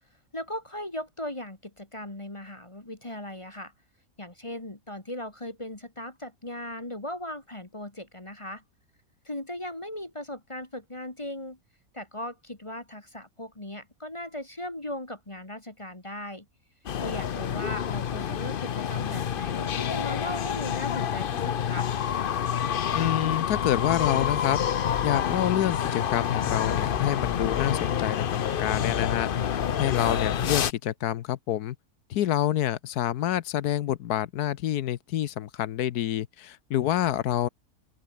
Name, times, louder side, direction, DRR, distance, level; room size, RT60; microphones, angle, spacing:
voice 1, 0.3-3.7 4.2-8.6 9.3-11.6 11.9-16.5 17.0-21.9 30.0-30.2, left 1 dB, 20° left, 1.9 m, -38 dB
sound 1, 16.9-30.7, left 9 dB, 50° left, 0.7 m, -28 dB
voice 2, 22.9-24.6 25.0-31.8 32.1-37.5, left 12 dB, 90° left, 1.3 m, -27 dB
open air
omnidirectional pair, 1.6 m